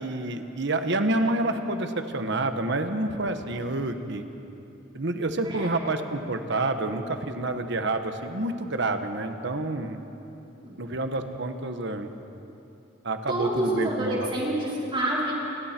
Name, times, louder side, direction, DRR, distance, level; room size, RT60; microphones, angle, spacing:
voice 1, 0.0-4.2 4.9-10.0 10.8-12.1 13.0-14.3, right 2 dB, 60° right, 7 dB, 1.4 m, -28 dB
voice 2, 13.3-15.3, right 1 dB, 25° right, -6 dB, 4.9 m, -27 dB
29.0 x 21.0 x 4.6 m, 3.0 s
head